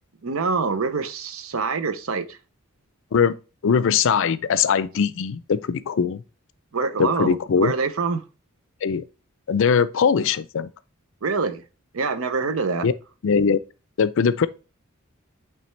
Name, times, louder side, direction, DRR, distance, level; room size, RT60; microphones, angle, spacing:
voice 1, 0.2-2.4 6.7-8.2 11.2-11.6 11.9-12.9, right 4 dB, 80° right, 0.7 m, -25 dB
voice 2, 3.6-6.2 7.0-7.7 8.8-9.0 9.5-10.7 12.8-12.9 13.2-13.6 14.0-14.5, left 6 dB, 65° left, 0.4 m, -21 dB
8.8 x 3.3 x 3.2 m
head